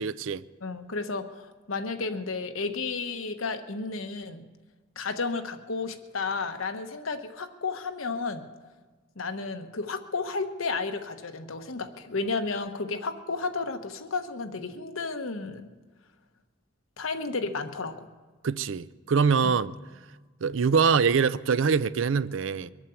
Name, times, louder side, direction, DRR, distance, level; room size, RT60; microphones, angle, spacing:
voice 1, 0.0-0.4 18.4-19.7 20.4-22.7, right 5 dB, 75° right, 0.5 m, -24 dB
voice 2, 0.6-4.5 5.0-8.5 9.2-15.7 17.0-18.1 19.4-19.6, left 4 dB, 90° left, 1.1 m, -32 dB
23.0 x 9.0 x 7.0 m
head